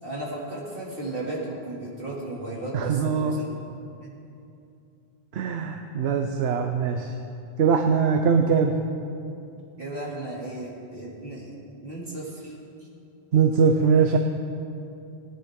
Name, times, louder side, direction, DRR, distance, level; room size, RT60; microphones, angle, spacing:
voice 1, 0.0-3.5 4.0-4.1 9.8-11.5 11.8-12.5, right 2 dB, 60° right, -5 dB, 2.9 m, -35 dB
voice 2, 2.7-3.4 5.3-7.1 7.6-8.7 13.3-14.2, right 6 dB, 80° right, 4 dB, 0.9 m, -21 dB
19.0 x 10.0 x 3.7 m, 2.6 s
omnidirectional pair, 1.0 m